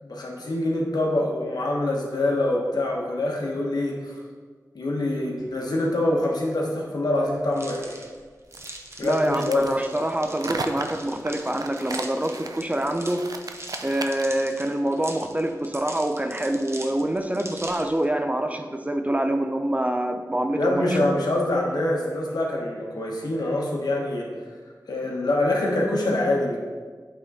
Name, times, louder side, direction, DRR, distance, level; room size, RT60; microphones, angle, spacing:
voice 1, 0.0-4.1 4.7-8.0 9.0-9.7 20.6-24.3 24.9-26.6, left 1 dB, 90° left, -1 dB, 1.1 m, -25 dB
sound 1, 7.5-18.0, right 1 dB, 40° right, 0.9 m, -42 dB
sound 2, 8.5-14.4, right 3 dB, 70° right, 0.5 m, -36 dB
voice 2, 9.0-13.3 13.8-21.1, right 1 dB, 20° right, 6 dB, 0.6 m, -26 dB
8.3 x 3.7 x 4.1 m, 1.5 s
wide cardioid pair, 50°, 7 cm